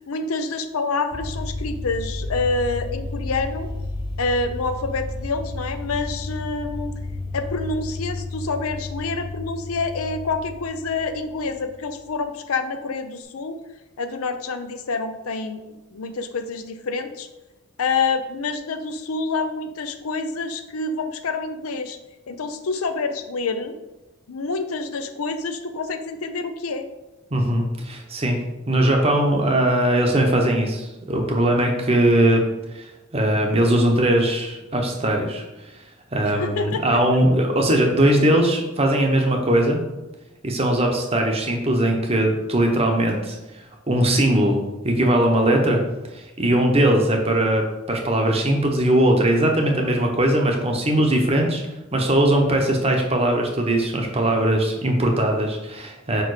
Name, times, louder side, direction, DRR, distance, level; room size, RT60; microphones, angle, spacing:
voice 1, 0.1-3.7 4.2-7.0 7.3-13.6 14.0-15.6 15.9-17.3 17.8-22.0 22.3-23.7 24.3-26.9 36.2-36.8, left 3 dB, 85° left, 8 dB, 0.6 m, -27 dB
sound 1, 1.1-11.8, left 2 dB, 25° left, 0.7 m, -32 dB
voice 2, 27.3-32.4 32.7-35.8 36.1-39.8 40.4-45.8 46.1-51.6 51.9-56.2, right 1 dB, 30° right, 2 dB, 0.8 m, -20 dB
5.1 x 4.6 x 4.8 m, 1.0 s
head